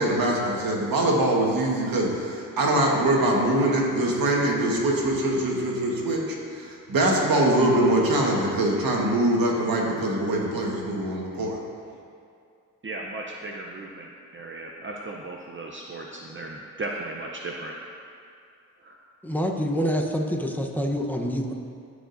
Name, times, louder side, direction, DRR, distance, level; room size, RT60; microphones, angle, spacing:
voice 1, 0.0-11.6, right 1 dB, 80° right, -2 dB, 1.5 m, -23 dB
voice 2, 12.8-17.8 18.8-19.0, right 2 dB, 35° right, -1 dB, 0.7 m, -36 dB
voice 3, 19.2-21.5, equal, 5° left, 1 dB, 0.9 m, -26 dB
15.0 x 5.0 x 2.6 m, 2.4 s
cardioid pair, 60°, 34 cm